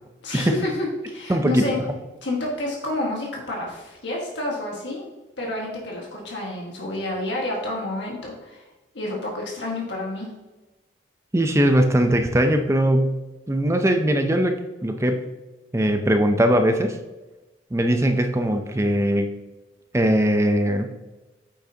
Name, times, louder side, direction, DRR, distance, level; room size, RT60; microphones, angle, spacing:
voice 1, 0.2-1.8 2.2-5.0 5.4-8.6 8.9-10.3, left 1 dB, 65° left, -2 dB, 1.6 m, -29 dB
voice 2, 1.3-1.6 11.3-13.1 13.5-14.6 14.8-15.2 15.7-17.0 17.7-19.3 19.9-20.9, right 1 dB, 15° right, 5 dB, 0.5 m, -20 dB
8.5 x 6.1 x 2.8 m, 1.1 s
head